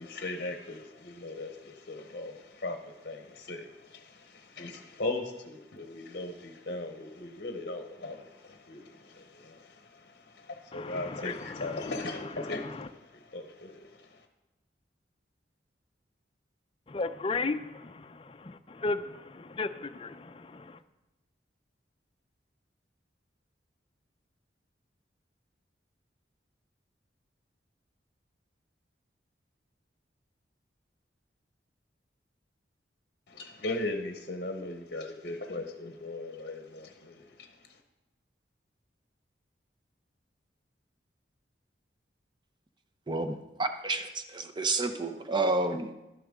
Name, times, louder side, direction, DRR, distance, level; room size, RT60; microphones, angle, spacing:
voice 1, 0.0-14.2 33.3-37.8, left 2 dB, 55° left, 0.8 m, -39 dB
voice 2, 10.7-11.7 16.9-18.1 18.4-19.0 19.3-20.6, left 3 dB, 30° left, 0.4 m, -34 dB
voice 3, 43.6-45.9, right 2 dB, 25° right, 0.7 m, -30 dB
12.0 x 10.0 x 3.6 m
head